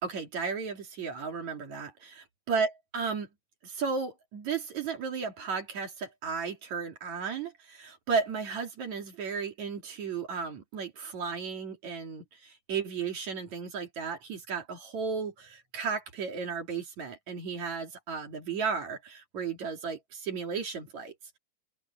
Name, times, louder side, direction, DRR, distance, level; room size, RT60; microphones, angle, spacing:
voice 1, 0.0-3.3 3.6-21.4, right 5 dB, 45° right, 3.2 m, -34 dB
open air
omnidirectional pair, 5.6 m